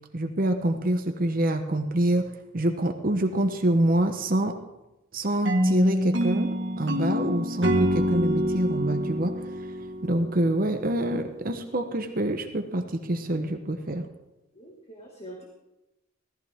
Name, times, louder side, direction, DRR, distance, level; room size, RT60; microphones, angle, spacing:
voice 1, 0.1-2.3 2.5-4.5 5.1-9.3 10.0-14.1, right 1 dB, 45° right, 6 dB, 1.0 m, -26 dB
sound 1, 5.4-10.6, equal, 65° right, 1.6 m, -26 dB
voice 2, 14.5-15.4, right 1 dB, 30° left, -1 dB, 1.9 m, -44 dB
16.5 x 14.5 x 3.6 m, 0.96 s
head